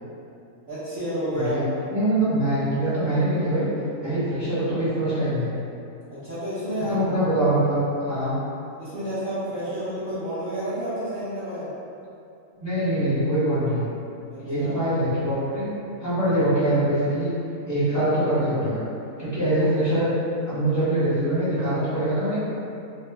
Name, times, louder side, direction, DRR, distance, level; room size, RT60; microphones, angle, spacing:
voice 1, 0.7-1.6 6.1-7.0 8.8-11.7 14.3-14.9, right 1 dB, 45° right, -16 dB, 0.8 m, -30 dB
voice 2, 1.9-3.7 4.0-5.5 6.8-8.3 12.6-13.8 14.4-15.7 16.0-17.3 17.7-18.8 19.2-20.1 20.5-22.4, right 1 dB, 25° right, -12 dB, 0.4 m, -23 dB
2.8 x 2.0 x 3.3 m, 2.6 s
omnidirectional pair, 1.6 m